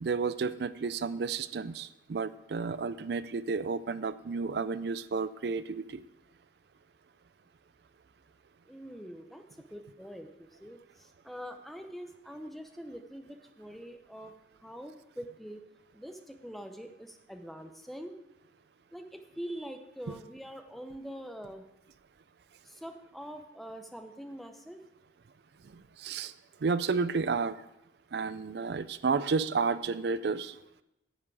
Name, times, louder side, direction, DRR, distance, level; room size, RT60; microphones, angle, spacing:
voice 1, 0.0-5.8 26.0-26.3 26.6-27.6 28.1-30.5, right 4 dB, 60° right, 14 dB, 0.4 m, -31 dB
voice 2, 8.7-9.4 9.7-14.3 14.6-15.6 15.9-18.2 18.9-21.7 22.6-24.8, equal, ahead, 5 dB, 0.6 m, -44 dB
10.0 x 7.5 x 4.8 m, 0.89 s
head